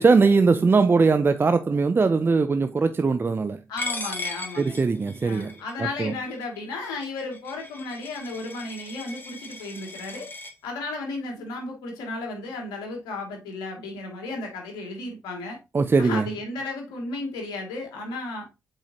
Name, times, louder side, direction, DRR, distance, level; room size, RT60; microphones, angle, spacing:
voice 1, 0.0-3.6 4.6-5.5 6.0-6.1 15.7-16.3, right 4 dB, 30° right, 0.5 m, -20 dB
voice 2, 3.7-4.8 5.2-10.3 10.6-15.6 16.0-18.5, left 2 dB, 75° left, 2.3 m, -34 dB
Coin (dropping), 3.8-10.5, left 3 dB, 30° left, 1.8 m, -37 dB
7.4 x 4.7 x 2.8 m
hypercardioid pair, 45°, 7 cm